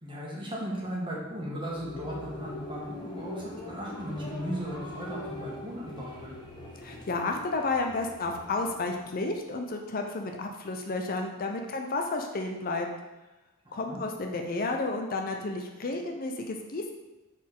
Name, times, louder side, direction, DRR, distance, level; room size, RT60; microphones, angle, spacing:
voice 1, 0.0-6.4 13.6-14.0, equal, 25° right, -4 dB, 1.5 m, -36 dB
sound 1, 1.1-9.8, left 2 dB, 20° left, 1.1 m, -43 dB
voice 2, 6.8-12.9 13.7-16.9, left 3 dB, 45° left, 3 dB, 0.6 m, -32 dB
6.3 x 4.2 x 3.7 m, 1.1 s
head